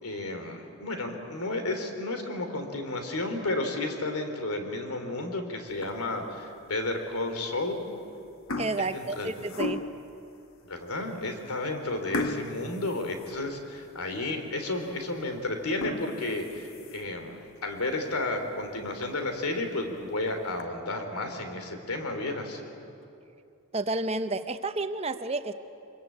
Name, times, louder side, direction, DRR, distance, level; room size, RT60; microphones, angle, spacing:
voice 1, 0.0-7.8 8.8-9.3 10.6-22.6, left 2 dB, 90° left, 6 dB, 3.0 m, -32 dB
sound 1, 5.7-6.2 6.8-6.9 7.8-8.0 8.3-10.1 10.8-10.9 11.2-11.3 12.1-13.9 14.3-14.4 14.9-15.0 15.6-17.2 17.7-17.8 18.2-18.3 18.6-18.7 19.0-19.1 20.0-20.6, left 2 dB, 70° left, 1.3 m, -36 dB
voice 2, 8.6-9.8 23.7-25.5, right 2 dB, 25° right, 9 dB, 0.8 m, -30 dB
23.5 x 22.5 x 8.5 m, 2.7 s
head